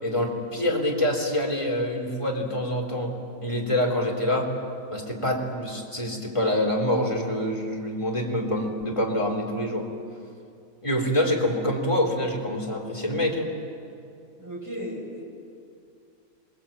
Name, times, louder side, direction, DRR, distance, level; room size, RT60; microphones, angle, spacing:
voice 1, 0.0-3.1 3.4-4.5 4.9-9.9 10.8-13.5, left 1 dB, 20° left, -1 dB, 4.0 m, -26 dB
voice 2, 14.4-15.2, equal, 10° right, -2 dB, 6.7 m, -35 dB
26.5 x 22.5 x 9.0 m, 2.5 s
omnidirectional pair, 1.6 m